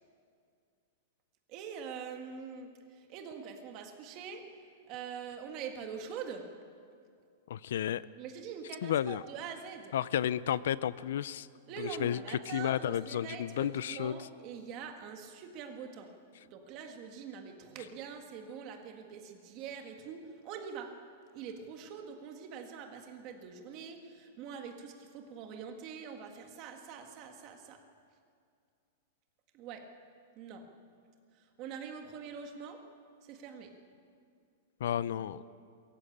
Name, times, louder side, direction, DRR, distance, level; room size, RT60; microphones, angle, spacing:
voice 1, 1.5-2.7 3.1-4.5 4.9-6.5 8.2-9.9 11.7-16.1 16.4-20.2 20.4-20.9 21.3-27.8 29.5-29.9 30.4-30.7 31.6-32.8 33.3-33.7 35.3-35.4, right 7 dB, 30° right, 4 dB, 1.7 m, -44 dB
voice 2, 7.5-8.0 8.8-9.2 9.9-11.5 11.8-14.3 34.8-35.4, left 10 dB, 65° left, 18 dB, 0.5 m, -32 dB
22.5 x 14.5 x 8.7 m, 2.3 s
supercardioid pair, 175°, 0 cm